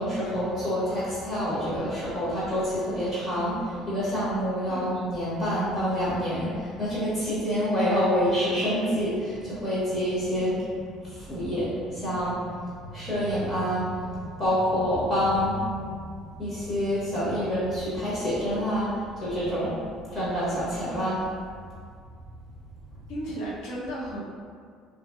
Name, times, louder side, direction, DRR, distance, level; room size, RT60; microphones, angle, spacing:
voice 1, 0.0-19.8 20.1-21.2, equal, 30° left, -10 dB, 0.7 m, -27 dB
voice 2, 23.1-24.3, right 1 dB, 75° left, -6 dB, 0.7 m, -34 dB
2.7 x 2.6 x 2.3 m, 2.1 s
cardioid pair, 170°, 0 cm